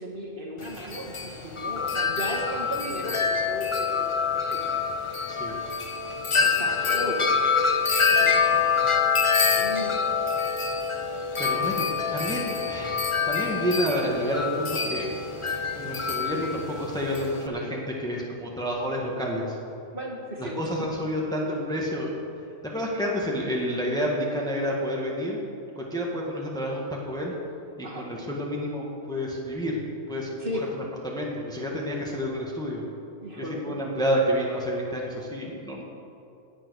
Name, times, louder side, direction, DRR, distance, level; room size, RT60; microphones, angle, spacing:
voice 1, 0.0-4.6 6.3-7.2 9.3-9.9 19.9-20.6 27.8-28.1 30.4-30.7 33.2-33.9, equal, 40° right, -2 dB, 2.1 m, -35 dB
Wind chime, 0.6-17.5, left 5 dB, 30° left, 0.7 m, -26 dB
voice 2, 8.1-8.7 11.4-15.1 15.8-19.6 20.4-22.1 22.6-25.4 25.8-27.3 27.8-29.8 30.1-30.3 31.0-32.8 33.6-35.8, equal, 5° left, -2 dB, 1.7 m, -29 dB
18.0 x 7.9 x 6.4 m, 2.7 s
omnidirectional pair, 1.4 m